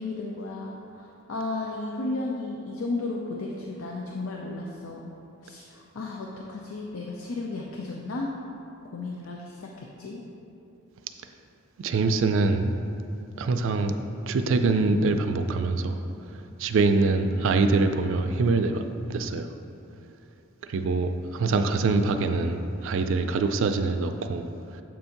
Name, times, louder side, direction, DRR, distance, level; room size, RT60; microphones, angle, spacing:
voice 1, 0.0-5.1 5.4-8.3 8.9-10.2, left 2 dB, 70° left, -1 dB, 0.5 m, -34 dB
voice 2, 11.8-12.7 13.4-13.9 14.2-16.0 16.6-18.8 19.1-19.5 20.7-24.5, right 3 dB, 65° right, 7 dB, 0.4 m, -24 dB
7.5 x 2.7 x 5.7 m, 2.8 s
head